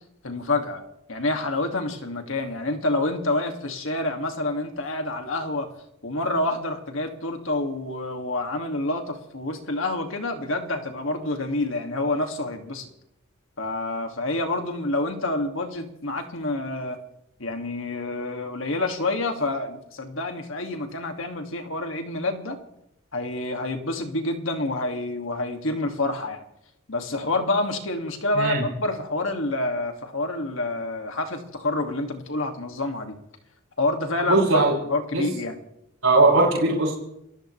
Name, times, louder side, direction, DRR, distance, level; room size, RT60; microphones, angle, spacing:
voice 1, 0.2-0.8 1.1-5.7 6.0-12.9 13.6-17.0 17.4-22.6 23.1-26.4 26.9-33.2 33.8-35.6, left 2 dB, 65° left, 4 dB, 2.3 m, -28 dB
voice 2, 34.2-34.7 35.1-35.3 36.0-36.9, right 2 dB, 75° right, -6 dB, 5.9 m, -19 dB
29.5 x 15.0 x 3.3 m, 0.80 s
head